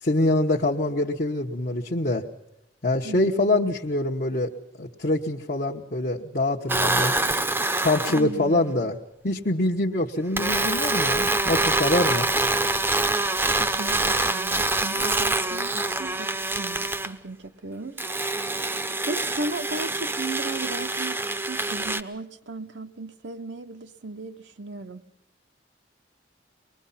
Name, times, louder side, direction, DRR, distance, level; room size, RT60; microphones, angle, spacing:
voice 1, 0.0-2.3 2.8-4.5 4.8-7.1 7.8-9.0 9.2-12.3, left 2 dB, 50° left, 1.1 m, -24 dB
voice 2, 3.0-3.7 8.1-8.9 13.6-18.0 19.0-25.0, right 2 dB, 75° right, 1.0 m, -36 dB
sound 1, 6.7-8.3 10.4-17.1 18.0-22.0, right 2 dB, 10° right, 0.7 m, -25 dB
24.5 x 21.0 x 5.7 m
head